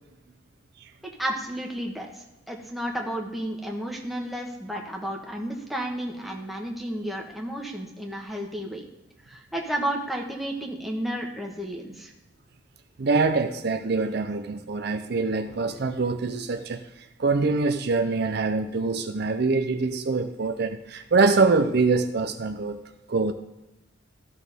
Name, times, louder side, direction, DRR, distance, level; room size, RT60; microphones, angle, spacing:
voice 1, 1.2-8.9 9.3-12.1, right 1 dB, ahead, -1 dB, 1.2 m, -32 dB
voice 2, 13.0-16.9 17.2-22.8 23.1-23.3, right 3 dB, 55° right, 7 dB, 0.5 m, -24 dB
13.5 x 6.1 x 3.6 m, 0.97 s
head